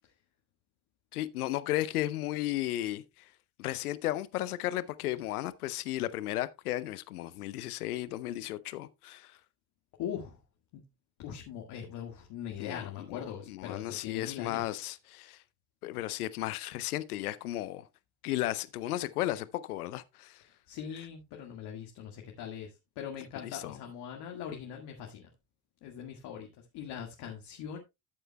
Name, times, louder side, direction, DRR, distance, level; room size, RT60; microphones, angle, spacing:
voice 1, 1.1-3.3 3.6-9.4 12.6-15.4 15.8-17.9 18.2-20.4 23.4-23.8, left 15 dB, 80° left, 0.7 m, -34 dB
voice 2, 10.0-10.4 10.7-10.8 11.2-14.7 20.4-25.3 25.8-26.5 26.7-27.8, left 8 dB, 65° left, 1.9 m, -41 dB
14.0 x 7.7 x 2.2 m
hypercardioid pair, 55°, 44 cm